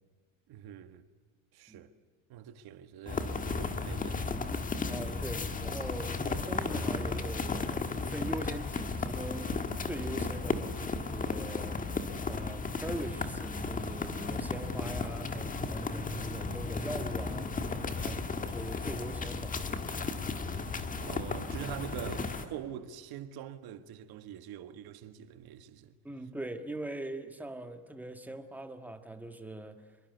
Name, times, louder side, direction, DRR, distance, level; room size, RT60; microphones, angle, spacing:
voice 1, 0.5-1.1 1.5-1.9 2.3-4.4 17.9-18.2 20.6-26.0, right 10 dB, 55° right, 1.8 m, -44 dB
sound 1, 3.1-22.5, left 4 dB, 20° left, 1.6 m, -34 dB
voice 2, 4.9-11.9 12.3-17.5 18.0-18.2 18.5-19.6 26.0-30.0, right 1 dB, 5° right, 1.5 m, -41 dB
26.5 x 23.0 x 8.2 m
cardioid pair, 170°, 45 cm